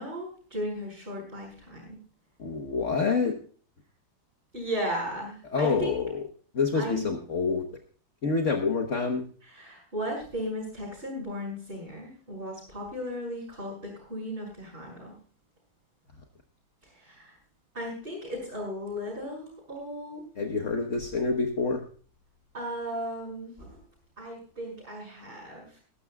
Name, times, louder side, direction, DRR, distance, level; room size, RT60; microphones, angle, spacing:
voice 1, 0.0-2.0 4.5-5.9 6.7-7.1 9.4-15.1 16.8-17.4 17.7-20.2 22.5-23.8 24.2-25.8, equal, 30° right, -7 dB, 6.2 m, -36 dB
voice 2, 2.4-3.3 5.5-6.2 6.5-7.7 8.2-9.2 20.4-21.8, left 4 dB, 45° left, 4 dB, 1.4 m, -27 dB
21.0 x 12.0 x 2.3 m, 0.42 s
omnidirectional pair, 1.9 m